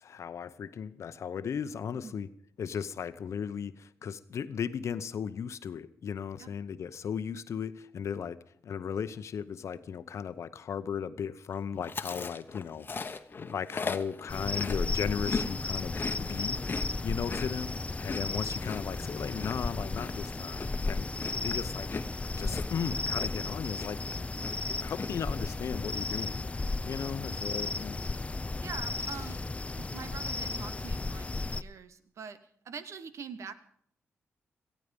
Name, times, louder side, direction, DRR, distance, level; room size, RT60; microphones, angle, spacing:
voice 1, 0.0-2.3 2.6-16.6 17.0-17.8 18.0-20.6 20.9-21.9 22.4-24.0 24.7-26.5 26.8-28.0, left 7 dB, 70° left, 14 dB, 0.8 m, -36 dB
Chewing mastication, 11.8-15.5 15.8-23.5 23.8-24.1 24.4-25.1, left 4 dB, 40° left, 1.1 m, -38 dB
sound 1, 14.3-31.6, left 3 dB, 25° left, 0.6 m, -34 dB
voice 2, 28.6-29.5 29.7-32.4 32.6-33.5, right 6 dB, 70° right, 13 dB, 1.2 m, -44 dB
17.5 x 14.5 x 5.3 m, 0.64 s
cardioid pair, 55°, 5 cm